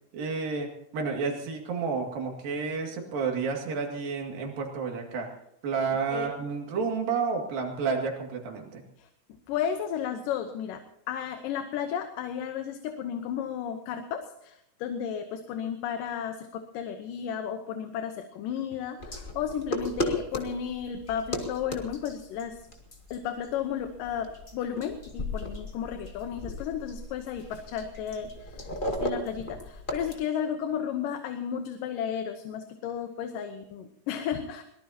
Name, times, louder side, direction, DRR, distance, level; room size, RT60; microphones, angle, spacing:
voice 1, 0.1-5.4 5.6-8.8, right 5 dB, 80° right, 2 dB, 4.0 m, -30 dB
voice 2, 9.5-22.6 23.1-34.6, left 8 dB, 75° left, 7 dB, 2.6 m, -33 dB
sound 1, 19.0-30.1, left 1 dB, 20° left, 1.4 m, -36 dB
23.0 x 19.0 x 2.8 m, 0.79 s
omnidirectional pair, 4.0 m